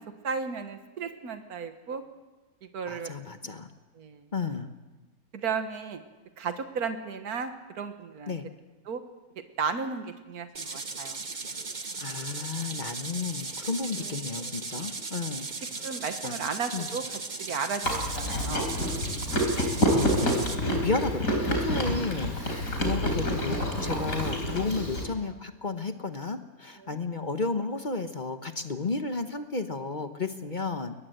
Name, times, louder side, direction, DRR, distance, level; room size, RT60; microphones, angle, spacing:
voice 1, 0.2-2.0 2.7-3.1 4.0-4.3 5.3-6.0 6.4-8.4 8.9-9.0 9.6-11.2 14.0-14.5 15.2-15.3 15.8-18.7 22.5-22.7 26.8-27.0, right 5 dB, 80° right, 8 dB, 1.9 m, -34 dB
voice 2, 2.9-3.7 4.3-4.7 8.3-8.5 12.0-15.5 16.2-16.4 16.7-16.9 19.9-30.9, left 3 dB, 35° left, 8 dB, 1.1 m, -33 dB
sound 1, 10.5-20.6, right 4 dB, 30° right, 1.3 m, -37 dB
Chewing mastication, 17.8-25.0, equal, 65° left, 4.5 m, -28 dB
22.0 x 20.0 x 7.9 m, 1.2 s
omnidirectional pair, 1.6 m